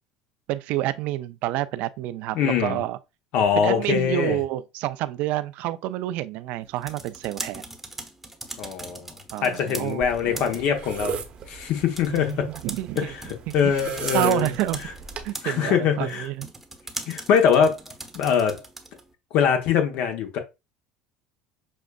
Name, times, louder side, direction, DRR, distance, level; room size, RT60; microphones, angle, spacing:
voice 1, 0.5-3.0 3.6-7.6 9.3-10.6 12.1-13.1 13.5-13.7 14.1-14.8 15.2-16.5, right 15 dB, 65° right, 0.4 m, -28 dB
voice 2, 2.3-2.8 3.3-4.4 8.6-9.1 9.4-11.2 11.5-12.5 13.0-13.3 13.5-14.5 15.4-16.3 17.1-17.8 18.1-18.6 19.3-20.4, left 7 dB, 60° left, 0.9 m, -23 dB
sound 1, 6.6-19.1, right 2 dB, 5° right, 0.9 m, -41 dB
sound 2, 10.0-15.3, right 7 dB, 45° right, 0.8 m, -36 dB
6.2 x 2.5 x 2.3 m
hypercardioid pair, 75°, 3 cm